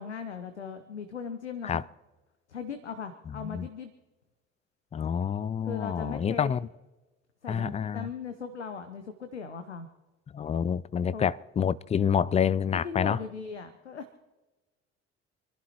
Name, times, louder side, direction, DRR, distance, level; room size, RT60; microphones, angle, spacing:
voice 1, 0.0-1.8 2.5-3.9 5.7-6.5 7.4-9.9 11.1-11.3 12.8-14.2, left 6 dB, 85° left, 0.7 m, -38 dB
voice 2, 3.4-3.7 4.9-6.7 7.5-8.1 10.3-13.2, left 7 dB, 20° left, 0.4 m, -28 dB
27.5 x 11.5 x 2.9 m
figure-of-eight pair, 50°, 33 cm